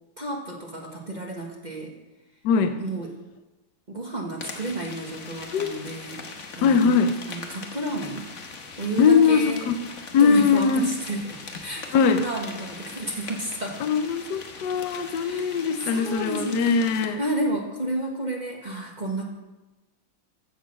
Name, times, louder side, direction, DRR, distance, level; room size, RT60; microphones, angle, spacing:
voice 1, 0.2-1.9 2.8-3.1 3.9-6.2 6.6-7.0 7.3-8.3 8.8-9.7 10.2-13.8 15.2-15.5 15.8-19.3, right 2 dB, 25° right, 0 dB, 1.3 m, -31 dB
voice 2, 2.4-2.8 5.5-5.7 6.6-7.1 9.0-9.7 10.1-10.9 11.9-12.3 13.8-17.2, left 6 dB, 65° left, 8 dB, 1.3 m, -21 dB
sound 1, 4.4-17.1, left 4 dB, 45° left, 1.3 m, -41 dB
15.0 x 6.6 x 6.3 m, 1.1 s
omnidirectional pair, 2.1 m